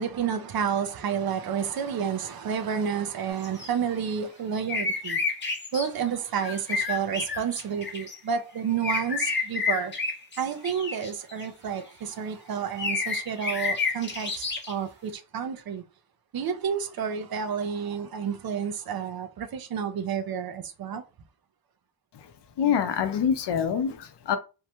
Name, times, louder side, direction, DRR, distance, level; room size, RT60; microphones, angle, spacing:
voice 1, 0.0-5.2 5.7-9.9 10.4-15.8 16.3-21.0, right 7 dB, 60° right, 0.5 m, -30 dB
sound 1, 3.4-3.7 4.7-5.9 6.4-8.2 8.8-11.4 12.8-14.7, left 4 dB, 25° left, 0.7 m, -30 dB
voice 2, 22.6-24.4, left 8 dB, 75° left, 0.6 m, -26 dB
2.7 x 2.1 x 2.8 m
wide cardioid pair, 125°, 42 cm